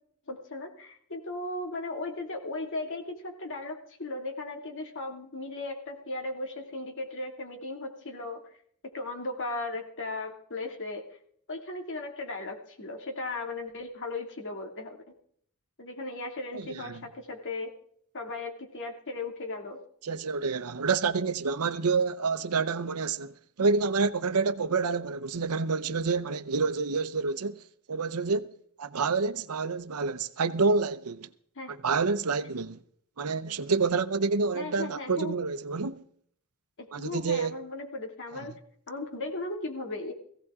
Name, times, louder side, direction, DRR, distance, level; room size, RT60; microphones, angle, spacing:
voice 1, 0.3-8.4 8.8-11.0 11.5-15.0 15.8-17.7 18.1-19.8 31.6-31.7 34.5-35.3 36.8-38.5 38.9-40.1, left 2 dB, 60° left, 2.4 m, -37 dB
voice 2, 16.5-17.0 20.0-31.3 31.7-32.8 33.2-36.0 36.9-37.5, right 4 dB, 85° right, 0.8 m, -28 dB
18.0 x 16.0 x 3.7 m
head